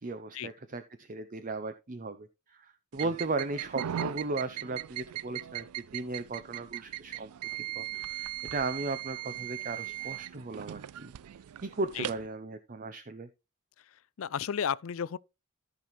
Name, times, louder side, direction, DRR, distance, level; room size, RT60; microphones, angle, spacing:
voice 1, 0.0-11.1 11.6-13.3, right 3 dB, 40° right, 0.6 m, -36 dB
sound 1, 2.9-12.3, right 12 dB, 85° right, 0.4 m, -39 dB
voice 2, 13.8-15.2, left 7 dB, 65° left, 0.4 m, -34 dB
14.0 x 5.8 x 3.1 m
head